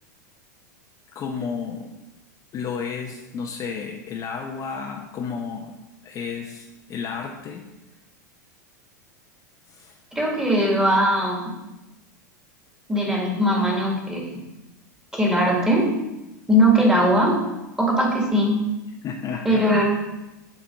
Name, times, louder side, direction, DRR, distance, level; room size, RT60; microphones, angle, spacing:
voice 1, 1.1-1.9 2.5-5.8 6.0-7.7 9.7-9.9 19.0-19.7, left 6 dB, 35° left, 1 dB, 0.8 m, -32 dB
voice 2, 10.1-11.5 12.9-14.4 15.1-15.9 16.5-17.4 17.8-18.6 19.4-19.8, equal, 5° right, -1 dB, 2.0 m, -20 dB
6.3 x 4.1 x 6.0 m, 0.98 s
hypercardioid pair, 95°, 10 cm